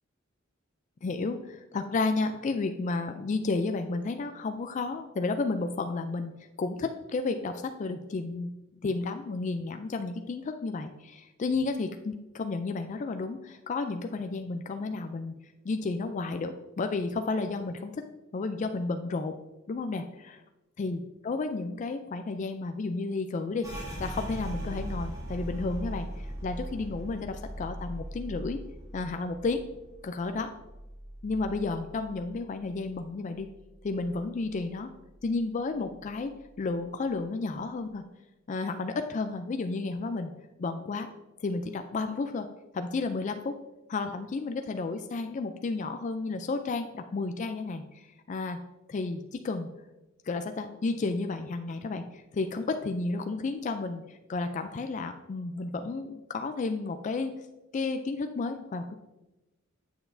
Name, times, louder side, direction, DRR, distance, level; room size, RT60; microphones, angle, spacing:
voice 1, 1.0-6.3 6.6-8.5 8.8-15.3 15.6-18.0 18.3-19.3 19.7-20.4 20.8-28.6 28.9-29.6 30.0-30.5 31.2-33.5 33.8-34.9 35.2-38.0 38.5-40.3 40.6-41.1 41.4-42.5 42.7-43.5 43.9-48.6 48.9-49.7 50.3-57.4 57.7-58.9, left 3 dB, 35° left, 7 dB, 0.3 m, -32 dB
sound 1, 23.6-33.0 33.3-34.6 34.9-35.4 35.8-36.4, right 1 dB, 15° right, 1.6 m, -40 dB
7.8 x 6.8 x 2.6 m, 1.0 s
head